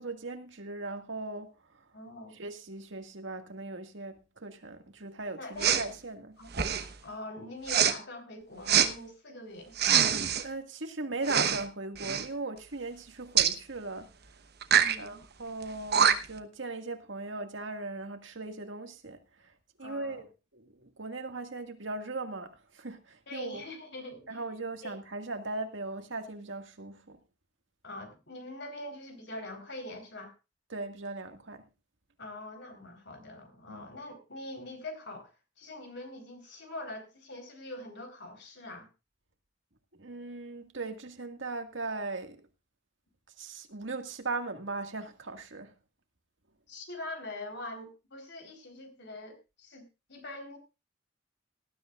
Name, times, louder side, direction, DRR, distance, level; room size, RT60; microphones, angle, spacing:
voice 1, 0.0-1.8 2.3-6.4 10.4-14.1 15.0-19.2 19.8-23.7 24.3-27.2 30.7-31.6 33.7-33.9 39.9-42.4 43.4-45.7, right 3 dB, 85° right, 1.9 m, -38 dB
voice 2, 1.9-2.4 5.4-5.8 6.4-6.5 7.0-9.8 14.7-15.2 19.8-20.2 23.3-24.4 24.8-25.0 27.8-30.3 32.2-35.3 35.6-38.9 46.7-49.8 50.1-50.6, left 1 dB, 65° left, 4.0 m, -43 dB
Respiratory sounds, 5.6-5.9 6.5-6.9 7.7-7.9 8.7-8.9 9.8-10.4 11.2-11.6 12.0-12.3 13.4-13.6 14.6-15.0 15.6-15.7 15.9-16.4, right 8 dB, 60° right, 1.1 m, -24 dB
19.0 x 12.5 x 2.5 m
head